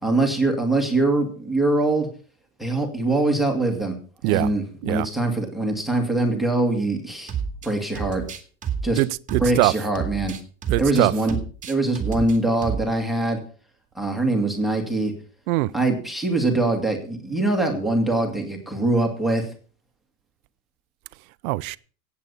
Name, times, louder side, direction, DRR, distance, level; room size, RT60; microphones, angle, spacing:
voice 1, 0.0-2.1 2.6-4.0 4.2-7.3 7.6-8.2 8.8-9.0 9.4-10.3 10.8-11.3 11.7-13.4 14.0-15.1 15.7-19.5, right 2 dB, ahead, 2.2 m, -23 dB
sound 1, 7.3-7.7 8.0-11.0 11.3-12.4 12.6-12.9, right 6 dB, 15° right, 2.2 m, -30 dB
voice 2, 9.0-9.8 10.7-11.3 15.5-15.7 21.4-21.8, right 20 dB, 65° right, 0.7 m, -22 dB
17.0 x 8.4 x 5.6 m
supercardioid pair, 155°, 46 cm